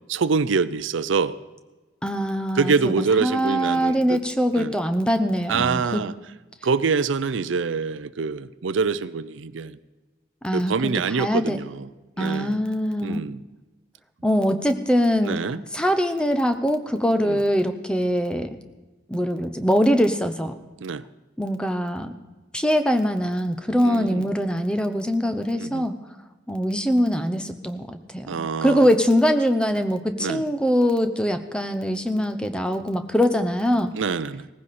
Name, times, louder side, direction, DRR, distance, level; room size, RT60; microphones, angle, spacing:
voice 1, 0.1-1.4 2.5-4.2 4.5-4.7 5.5-6.1 6.6-9.8 10.5-11.9 12.2-12.6 13.0-13.4 15.2-15.6 17.2-17.4 20.8-21.0 23.8-24.3 25.6-25.9 28.3-28.9 30.2-30.4 33.9-34.5, right 5 dB, 85° right, 15 dB, 0.5 m, -25 dB
voice 2, 2.0-6.0 10.4-10.9 11.2-11.6 12.2-13.2 14.2-15.4 15.7-18.6 19.1-20.5 21.4-22.1 22.5-25.9 26.5-33.9, equal, 5° left, 8 dB, 0.7 m, -23 dB
18.0 x 15.0 x 4.2 m, 1.2 s
head